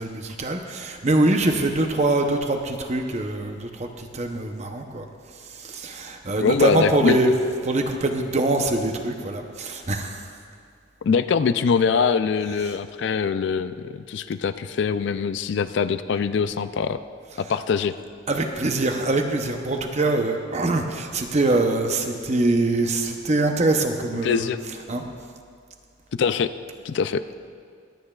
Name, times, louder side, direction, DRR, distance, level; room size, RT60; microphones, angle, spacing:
voice 1, 0.0-5.1 5.5-10.2 12.5-12.8 17.3-17.6 18.3-25.0, right 2 dB, 35° right, 4 dB, 0.7 m, -24 dB
voice 2, 6.4-7.2 11.0-17.0 17.4-17.9 24.2-24.6 26.1-26.5 26.8-27.2, left 6 dB, 60° left, 11 dB, 0.3 m, -23 dB
24.0 x 8.8 x 2.4 m, 2.2 s
head